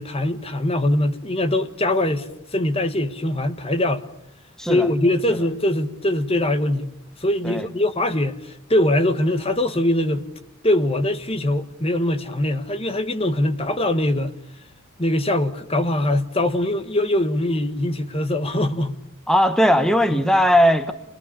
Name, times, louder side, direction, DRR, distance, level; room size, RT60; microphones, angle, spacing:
voice 1, 0.0-4.0 4.7-6.9 7.2-10.3 10.6-14.3 15.0-19.0 20.1-20.2, left 1 dB, 30° left, 1.5 m, -22 dB
voice 2, 19.3-20.9, equal, 5° left, 1.1 m, -18 dB
28.0 x 21.0 x 8.5 m
head